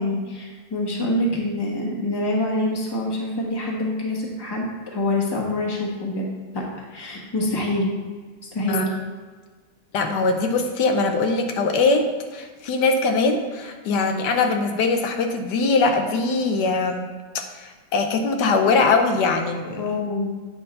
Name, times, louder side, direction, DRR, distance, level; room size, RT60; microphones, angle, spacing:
voice 1, 0.0-6.3 6.5-6.6 6.9-7.9 8.5-8.9 19.8-20.3, left 1 dB, 15° left, -2 dB, 1.0 m, -25 dB
voice 2, 9.9-17.1 17.3-19.8, left 3 dB, 80° left, 5 dB, 1.3 m, -22 dB
8.5 x 3.7 x 5.3 m, 1.4 s
omnidirectional pair, 1.8 m